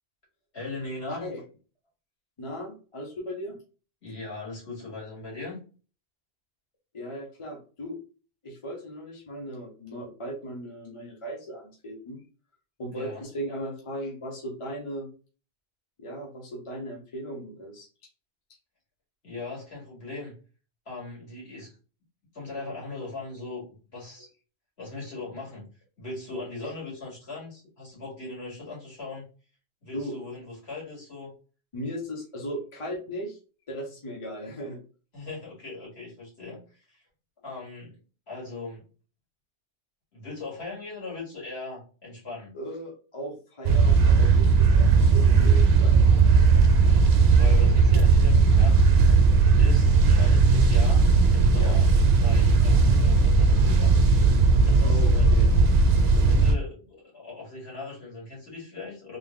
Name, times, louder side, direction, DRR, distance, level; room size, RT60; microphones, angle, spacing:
voice 1, 0.5-1.3 4.0-5.6 12.9-13.2 19.2-20.3 20.9-21.8 22.3-23.7 23.9-24.3 24.8-25.7 26.0-29.3 29.8-31.3 35.1-37.0 37.4-38.0 38.3-38.8 40.1-42.6 46.6-48.9 49.6-51.0 51.3-51.9 52.2-53.9 54.6-55.3 56.0-59.2, left 3 dB, 65° left, -4 dB, 2.2 m, -39 dB
voice 2, 1.1-1.4 2.4-3.6 6.9-8.0 8.4-12.2 12.8-15.1 16.0-18.1 26.6-26.7 29.9-30.2 31.7-33.4 33.7-34.8 42.5-46.0 51.5-51.8 54.8-55.5, equal, 30° left, -1 dB, 0.9 m, -37 dB
sound 1, 43.6-56.5, right 4 dB, 65° right, 0.9 m, -18 dB
3.5 x 2.4 x 3.7 m, 0.36 s
omnidirectional pair, 1.1 m